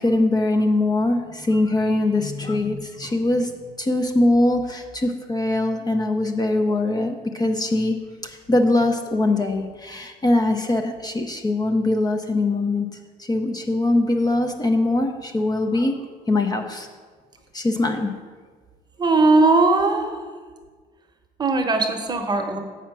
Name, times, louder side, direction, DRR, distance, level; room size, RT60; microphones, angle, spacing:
voice 1, 0.0-3.5 3.8-8.0 8.2-12.9 13.2-16.9 17.5-18.1, left 2 dB, 25° left, 4 dB, 0.6 m, -22 dB
voice 2, 19.0-20.2 21.4-22.6, right 3 dB, 25° right, 5 dB, 0.9 m, -19 dB
7.3 x 5.7 x 6.0 m, 1.5 s
cardioid pair, 110°, 17 cm